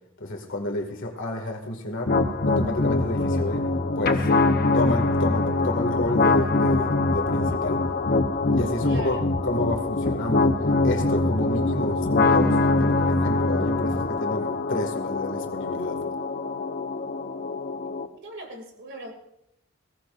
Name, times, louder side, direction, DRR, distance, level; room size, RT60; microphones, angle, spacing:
voice 1, 0.2-2.1 2.5-3.7 4.0-4.2 4.7-7.8 8.5-10.5 10.8-16.0, left 1 dB, 60° left, 4 dB, 2.2 m, -30 dB
sound 1, 2.1-18.1, left 2 dB, 45° left, 0.9 m, -23 dB
voice 2, 8.8-9.2 18.2-19.1, right 1 dB, 60° right, 2 dB, 2.7 m, -39 dB
21.0 x 17.5 x 2.6 m, 0.82 s
head